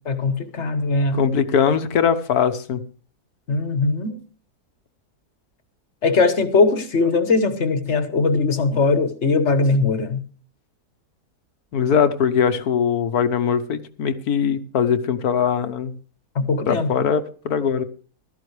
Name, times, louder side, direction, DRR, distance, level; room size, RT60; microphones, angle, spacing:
voice 1, 0.1-1.2 3.5-4.2 6.0-10.2 16.3-17.1, left 3 dB, 45° left, 1.5 m, -20 dB
voice 2, 1.1-2.8 11.7-15.9 16.7-17.8, left 7 dB, 70° left, 1.5 m, -21 dB
16.0 x 13.0 x 3.3 m
omnidirectional pair, 1.7 m